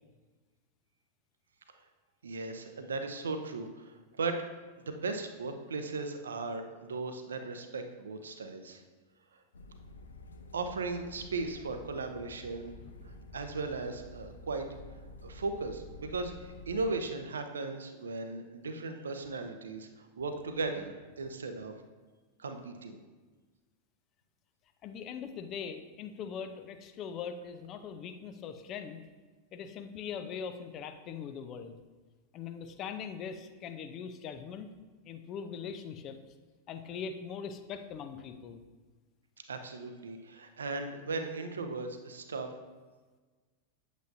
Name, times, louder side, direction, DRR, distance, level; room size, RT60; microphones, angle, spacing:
voice 1, 2.2-3.9 4.2-4.4 4.9-8.8 10.5-12.7 13.3-14.7 15.2-19.9 20.2-21.7 22.4-23.0 39.5-42.5, right 3 dB, 70° right, 7 dB, 0.8 m, -37 dB
sound 1, 9.5-16.8, left 2 dB, 70° left, 0.7 m, -50 dB
voice 2, 24.8-29.0 29.5-31.8 32.3-34.7 35.1-36.2 36.7-38.6, left 7 dB, 35° left, 7 dB, 0.7 m, -41 dB
8.9 x 8.2 x 2.7 m, 1.3 s
figure-of-eight pair, 90°, 0 cm